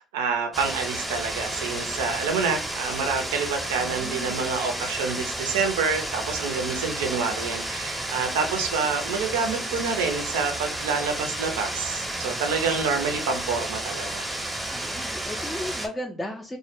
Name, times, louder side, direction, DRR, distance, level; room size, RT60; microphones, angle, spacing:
voice 1, 0.0-14.3, right 5 dB, 75° right, 5 dB, 0.4 m, -27 dB
sound 1, 0.5-15.9, right 1 dB, 15° right, 0.7 m, -32 dB
voice 2, 3.8-4.5 14.7-16.6, left 1 dB, 15° left, 1 dB, 0.4 m, -35 dB
2.1 x 2.0 x 3.0 m, 0.42 s
hypercardioid pair, 55°, 0 cm